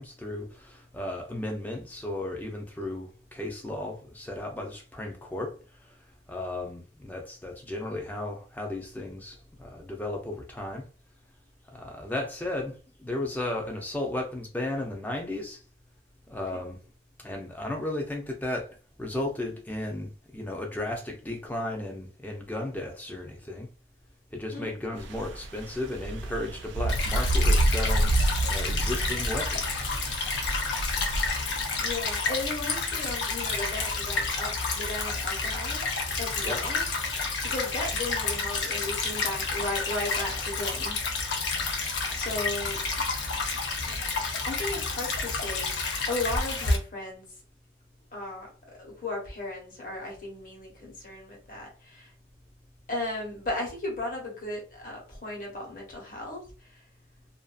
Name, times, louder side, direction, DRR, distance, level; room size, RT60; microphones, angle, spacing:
voice 1, 0.0-6.0 6.3-10.9 11.7-15.6 16.3-16.8 17.2-23.7 24.3-28.1 28.5-29.8 36.4-36.7, left 1 dB, 10° left, 0.5 m, -35 dB
sound 1, 25.0-32.0, right 1 dB, 90° right, 0.4 m, -28 dB
Stream / Trickle dribble, 26.9-46.8, left 3 dB, 85° left, 0.6 m, -30 dB
voice 2, 31.4-35.8 36.2-36.8 37.4-41.0 42.1-42.8 44.5-47.2 48.1-48.5 48.8-52.1 52.9-56.4 56.7-56.8, left 2 dB, 50° left, 1.0 m, -35 dB
2.5 x 2.3 x 2.4 m
head